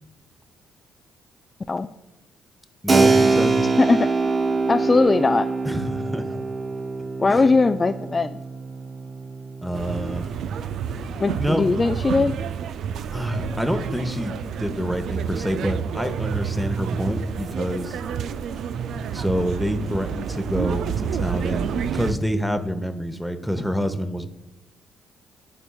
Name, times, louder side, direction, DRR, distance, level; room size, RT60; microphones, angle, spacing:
voice 1, 2.8-3.6 5.6-6.4 7.3-7.5 9.6-10.5 11.4-11.7 13.1-18.0 19.1-24.3, equal, ahead, 9 dB, 0.9 m, -27 dB
Keyboard (musical), 2.9-11.3, right 4 dB, 35° right, 0.8 m, -24 dB
voice 2, 4.7-5.5 7.2-8.4 11.2-12.3, left 3 dB, 35° left, 9 dB, 0.3 m, -19 dB
sound 1, 9.7-22.1, right 7 dB, 70° right, 0.3 m, -29 dB
11.5 x 4.4 x 2.3 m, 0.95 s
hypercardioid pair, 50°, 0 cm